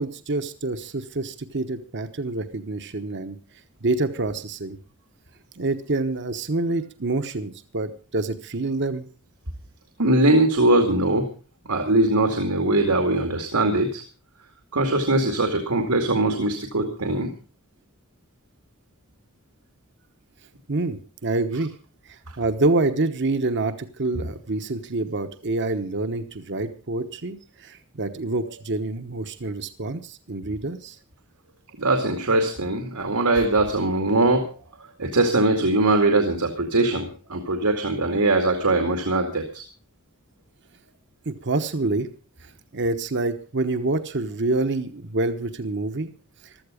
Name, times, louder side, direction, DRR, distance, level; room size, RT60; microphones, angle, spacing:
voice 1, 0.0-3.4 3.8-4.8 5.6-9.1 20.7-21.7 22.1-31.0 41.2-42.1 42.4-46.1 46.4-46.5, right 2 dB, 55° right, 8 dB, 1.1 m, -27 dB
voice 2, 10.0-11.3 11.7-14.0 14.7-17.3 31.8-34.5 35.0-39.6, right 2 dB, 85° right, 4 dB, 2.3 m, -21 dB
15.5 x 13.0 x 5.1 m, 0.37 s
head